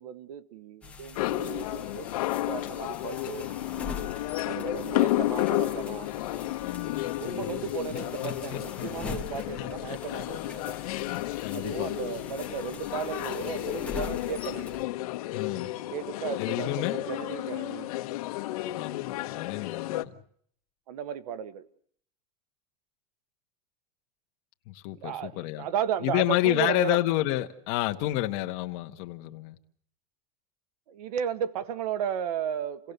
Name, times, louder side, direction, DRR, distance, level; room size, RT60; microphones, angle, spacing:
voice 1, 0.0-3.5 4.4-6.1 7.2-10.8 11.5-14.7 15.9-17.9 20.9-21.6 24.9-27.0 30.9-32.9, right 8 dB, 90° right, 1.6 m, -34 dB
sound 1, 0.8-14.8, left 4 dB, 5° left, 1.6 m, -43 dB
sound 2, 1.2-20.0, left 16 dB, 75° left, 1.2 m, -32 dB
voice 2, 6.6-7.5 7.9-10.5 10.8-11.9 15.3-15.7 16.4-17.0 18.7-20.1 24.7-25.6 26.0-29.6, left 17 dB, 45° left, 1.5 m, -31 dB
29.0 x 17.5 x 6.8 m
supercardioid pair, 175°, 19 cm